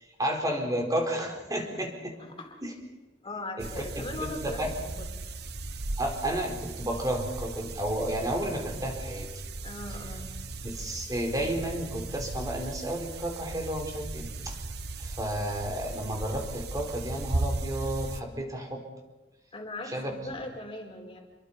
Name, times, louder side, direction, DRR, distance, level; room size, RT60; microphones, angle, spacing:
voice 1, 0.2-2.1 2.6-2.7 3.6-3.8 4.2-4.7 6.0-9.3 10.6-14.6 15.0-18.8 19.9-20.1, right 1 dB, 20° right, 2 dB, 4.3 m, -32 dB
voice 2, 2.2-2.5 3.2-5.2 9.6-10.3 19.5-21.2, left 2 dB, 30° left, 1 dB, 4.5 m, -40 dB
sound 1, 3.6-18.2, right 2 dB, 65° right, 1.3 m, -37 dB
28.0 x 23.0 x 5.5 m, 1.1 s
head